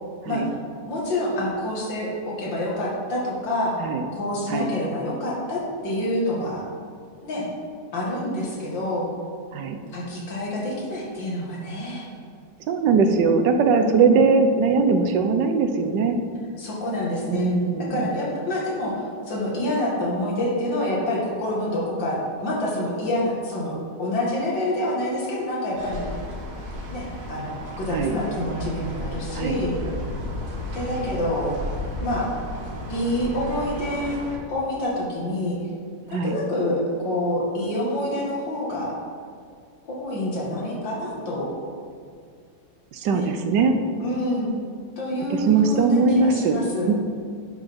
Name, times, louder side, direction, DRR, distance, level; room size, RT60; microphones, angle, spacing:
voice 1, 0.9-3.8 4.2-6.6 7.2-7.5 7.9-9.1 9.9-12.1 13.8-14.3 16.6-17.6 17.9-26.0 26.9-29.8 30.7-31.5 32.0-32.3 32.9-34.1 34.5-35.6 36.1-39.0 39.9-41.5 43.1-43.3 44.0-44.5 45.0-46.9, left 1 dB, 90° left, -4 dB, 2.6 m, -27 dB
voice 2, 12.7-16.2 17.3-18.0 27.9-28.1 29.3-29.6 36.1-36.4 42.9-43.8 45.3-46.6 46.9-47.0, right 4 dB, 75° right, 6 dB, 1.4 m, -20 dB
sound 1, 25.8-34.4, left 1 dB, 60° right, 2.0 m, -33 dB
10.0 x 5.8 x 5.2 m, 2.2 s
omnidirectional pair, 1.9 m